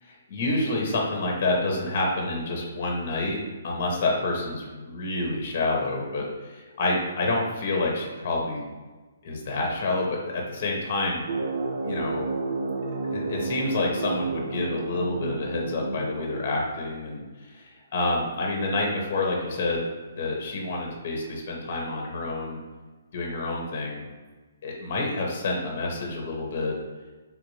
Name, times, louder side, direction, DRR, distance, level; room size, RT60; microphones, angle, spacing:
voice 1, 0.0-3.4 3.6-8.7 9.2-11.2 11.8-12.3 13.0-19.9 20.2-22.6 23.1-24.0 24.6-26.7, left 2 dB, 45° left, 0 dB, 0.8 m, -28 dB
sound 1, 11.3-17.0, right 3 dB, 60° right, 0.5 m, -31 dB
3.6 x 2.5 x 3.1 m, 1.3 s
hypercardioid pair, 160°, 0 cm